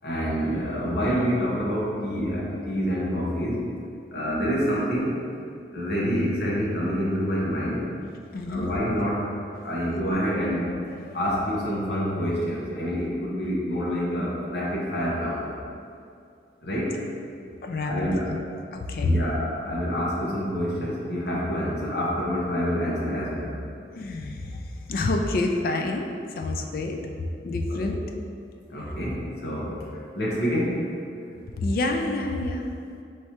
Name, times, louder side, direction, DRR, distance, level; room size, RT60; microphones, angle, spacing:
voice 1, 0.0-3.6 4.1-5.2 5.7-7.9 8.5-9.3 9.6-10.7 11.1-15.5 16.6-17.0 17.8-18.3 19.0-23.5 27.7-27.8 28.7-30.9, equal, 70° left, -5 dB, 0.9 m, -27 dB
voice 2, 8.3-8.7 11.1-11.2 17.6-18.4 18.7-19.2 24.0-27.0 27.4-28.0 31.6-32.7, left 2 dB, 50° left, 3 dB, 0.3 m, -27 dB
4.6 x 3.2 x 2.9 m, 2.4 s
head